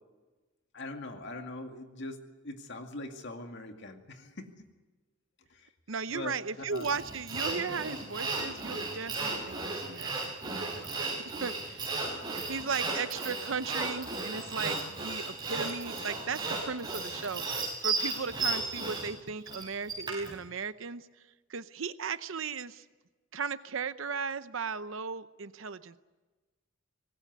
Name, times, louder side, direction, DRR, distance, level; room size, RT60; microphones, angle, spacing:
voice 1, 0.7-4.7 5.5-5.7 6.1-6.4 6.7-6.9 9.4-9.5 12.4-12.5, left 2 dB, 60° left, 5 dB, 2.2 m, -42 dB
voice 2, 5.9-12.0 12.5-21.1 21.5-22.8 23.3-26.0, right 5 dB, 70° right, 13 dB, 0.8 m, -36 dB
Sawing, 6.8-20.3, right 3 dB, 20° right, 6.5 m, -34 dB
25.5 x 19.5 x 9.4 m, 1.2 s
head